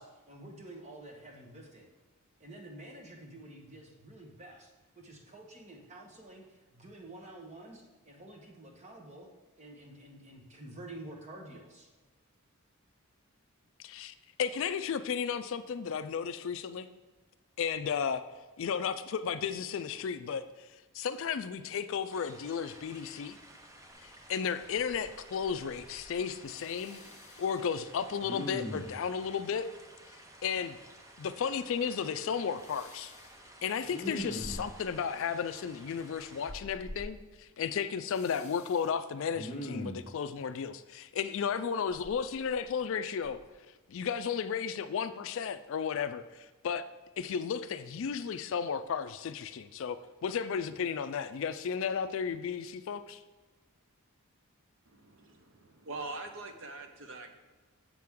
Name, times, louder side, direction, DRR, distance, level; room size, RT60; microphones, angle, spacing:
voice 1, 0.0-1.9 2.4-9.3 9.6-11.9, right 1 dB, 30° right, 2 dB, 1.1 m, -49 dB
voice 2, 13.8-16.9 17.6-18.2 18.6-20.7 20.9-23.4 24.0-27.0 27.4-29.7 30.4-30.8 31.2-33.1 33.6-43.4 43.9-46.8 47.2-50.0 50.2-53.2, left 7 dB, 60° left, 11 dB, 0.3 m, -34 dB
sound 1, 22.1-36.5, right 1 dB, 15° right, 0.6 m, -54 dB
Respiratory sounds, 24.1-24.2 24.6-25.2 25.4-26.2 26.5-27.5 28.2-29.0 32.6-33.3 33.8-34.9 36.5-37.1 38.1-38.8 39.3-40.1 41.9-42.8 43.2-43.4, equal, 30° left, 0.8 m, -42 dB
voice 3, 54.9-57.3, right 3 dB, 60° right, 6 dB, 0.8 m, -43 dB
7.5 x 6.0 x 3.6 m, 1.3 s
head